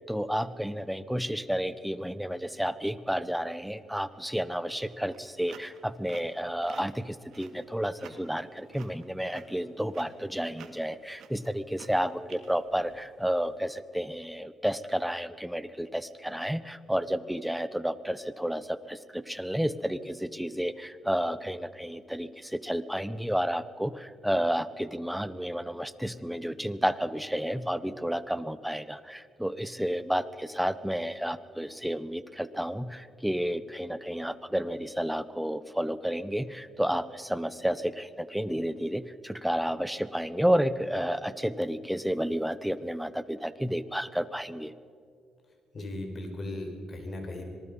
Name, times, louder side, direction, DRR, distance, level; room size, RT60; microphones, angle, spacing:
voice 1, 0.0-44.7, equal, ahead, 14 dB, 0.9 m, -31 dB
sound 1, 4.9-13.5, right 8 dB, 70° right, 2.1 m, -52 dB
voice 2, 45.7-47.4, left 1 dB, 40° left, 5 dB, 4.6 m, -37 dB
26.0 x 19.0 x 5.4 m, 2.4 s
cardioid pair, 90°, 0 cm